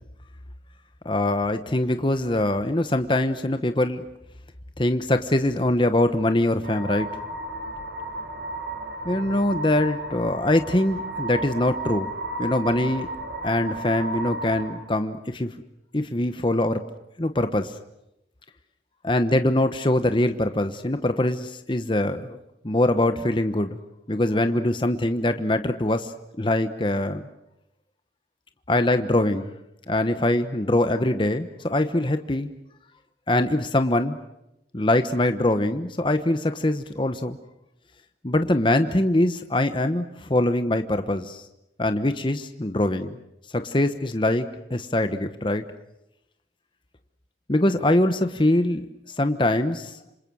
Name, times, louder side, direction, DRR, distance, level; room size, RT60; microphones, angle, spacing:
voice 1, 1.0-4.0 4.8-7.1 9.0-12.1 12.4-13.1 13.4-15.5 15.9-16.8 17.2-17.7 19.0-22.4 22.6-23.8 24.1-26.1 26.4-27.2 28.7-29.5 29.9-32.5 33.3-34.2 34.7-37.4 38.2-41.4 41.8-43.2 43.5-45.6 47.5-48.9 49.2-50.0, left 1 dB, 30° left, 8 dB, 1.1 m, -23 dB
sound 1, 6.6-14.7, right 1 dB, 80° right, 4.8 m, -33 dB
27.5 x 26.5 x 6.3 m, 0.86 s
head